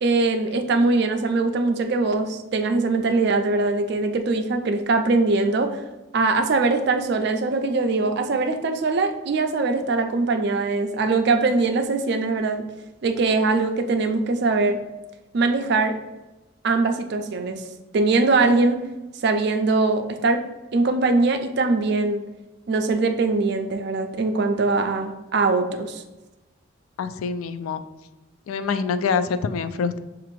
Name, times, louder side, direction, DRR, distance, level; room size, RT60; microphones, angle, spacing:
voice 1, 0.0-5.8 6.1-12.6 13.0-14.8 15.3-16.0 16.6-17.6 17.9-18.8 19.2-20.4 20.7-22.2 22.7-26.0, right 3 dB, 55° right, 6 dB, 0.4 m, -22 dB
voice 2, 27.0-27.8 28.5-30.0, left 5 dB, 90° left, 12 dB, 0.3 m, -25 dB
6.6 x 2.5 x 3.1 m, 1.1 s
head